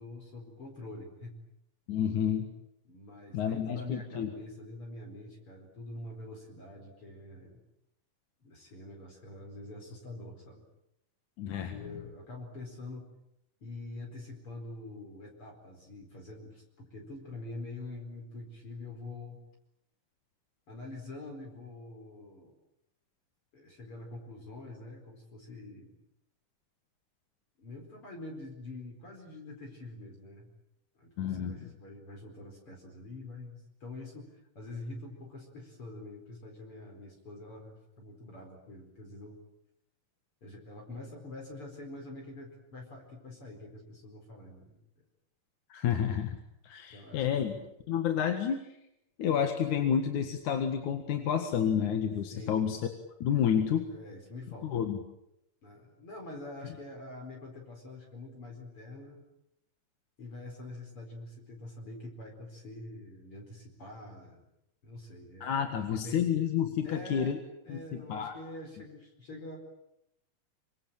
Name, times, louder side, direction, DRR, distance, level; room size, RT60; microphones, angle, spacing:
voice 1, 0.0-1.4 2.9-7.6 8.4-10.7 11.7-13.1 13.6-19.4 20.7-22.5 23.5-26.0 27.6-30.5 31.0-39.4 40.4-44.8 46.9-47.7 52.3-52.6 53.3-54.9 55.6-59.2 60.2-64.5 64.8-66.2 66.8-67.4 67.6-69.6, left 2 dB, 40° left, 1 dB, 5.4 m, -45 dB
voice 2, 1.9-2.5 3.3-4.3 11.4-11.9 31.2-31.7 45.7-46.4 46.6-47.5 47.9-48.6 49.2-52.8 53.2-53.9 54.6-55.0 65.4-67.4 67.7-68.3, left 8 dB, 65° left, 6 dB, 3.1 m, -30 dB
25.5 x 25.5 x 9.0 m, 0.83 s
omnidirectional pair, 3.8 m